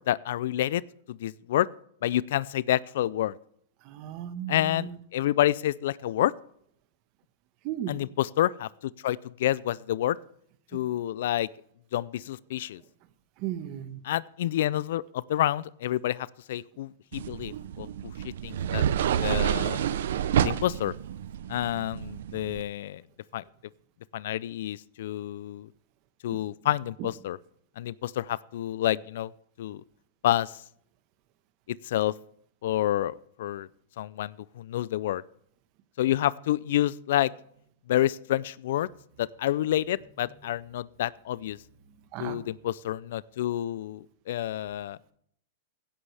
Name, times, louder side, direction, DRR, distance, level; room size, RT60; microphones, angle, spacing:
voice 1, 0.1-0.8 1.1-1.7 2.0-3.4 4.5-6.3 7.9-10.2 10.7-11.5 11.9-12.8 14.0-17.9 18.4-19.8 20.4-20.9 21.5-23.0 23.3-23.4 24.1-25.7 26.2-27.4 27.8-29.3 29.6-29.8 30.2-30.5 31.7-32.1 32.6-33.7 34.0-35.2 36.0-37.3 37.9-38.9 39.2-41.6 42.2-45.0, left 13 dB, 65° left, 22 dB, 0.4 m, -28 dB
voice 2, 3.9-4.9 7.6-8.0 13.4-14.0 42.1-42.4, right 11 dB, 40° right, 11 dB, 1.2 m, -35 dB
sound 1, 17.1-22.6, right 9 dB, 70° right, 0.6 m, -29 dB
16.0 x 11.0 x 3.4 m, 0.68 s
hypercardioid pair, 145°, 0 cm